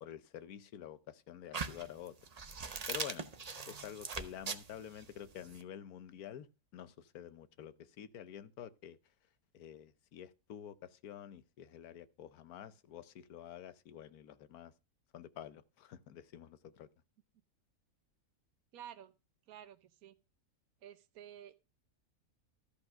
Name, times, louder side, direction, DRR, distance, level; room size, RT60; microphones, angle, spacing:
voice 1, 0.0-2.1 2.6-3.3 3.6-9.0 9.5-14.7 15.1-16.9, left 10 dB, 75° left, 1.3 m, -49 dB
sound 1, 1.5-5.6, right 5 dB, 35° right, 0.7 m, -41 dB
voice 2, 18.7-19.1 19.5-20.1 20.8-21.5, right 10 dB, 70° right, 1.2 m, -51 dB
13.5 x 5.2 x 6.3 m
omnidirectional pair, 1.6 m